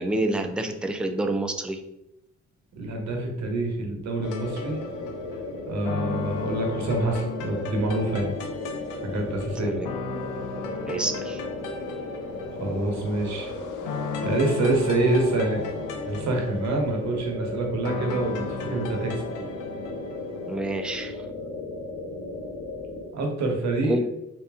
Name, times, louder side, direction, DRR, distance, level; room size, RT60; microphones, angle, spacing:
voice 1, 0.0-1.8 9.6-9.9 10.9-11.4 20.5-21.2 23.9-24.0, right 1 dB, 5° right, 6 dB, 0.3 m, -28 dB
voice 2, 2.7-4.8 5.7-8.3 9.0-9.8 12.6-13.5 14.2-19.1 23.1-24.0, right 2 dB, 65° right, 1 dB, 1.1 m, -26 dB
sound 1, 4.2-20.6, left 5 dB, 85° left, 0.5 m, -36 dB
sound 2, 4.2-23.0, left 2 dB, 25° left, 1.3 m, -36 dB
3.3 x 2.8 x 3.5 m, 0.85 s
cardioid pair, 90°, 30 cm